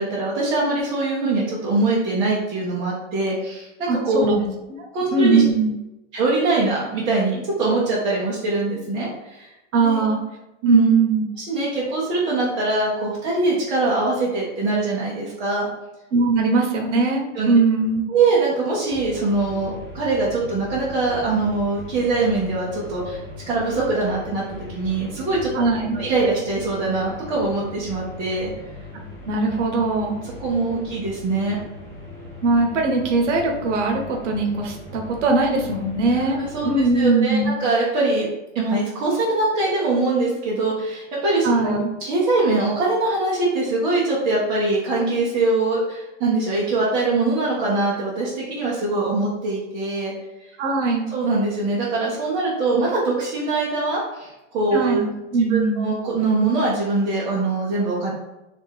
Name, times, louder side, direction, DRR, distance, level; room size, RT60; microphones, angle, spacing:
voice 1, 0.0-4.3 4.9-5.4 6.1-9.5 9.8-10.0 10.6-10.9 11.4-15.7 17.3-17.5 18.1-23.2 23.5-25.5 25.9-28.5 30.4-31.6 36.1-50.1 50.4-50.5 51.1-55.0 55.5-58.1, right 3 dB, 15° right, -8 dB, 0.4 m, -23 dB
voice 2, 3.9-4.5 5.1-5.7 9.7-10.2 10.7-11.2 16.1-18.0 25.5-26.0 29.3-30.2 32.4-37.6 41.4-41.9 50.6-51.1 54.7-55.8, right 3 dB, 80° right, 2 dB, 1.0 m, -20 dB
sound 1, 18.9-37.0, left 2 dB, 10° left, 0.9 m, -39 dB
3.6 x 3.3 x 4.4 m, 0.98 s
supercardioid pair, 170°, 36 cm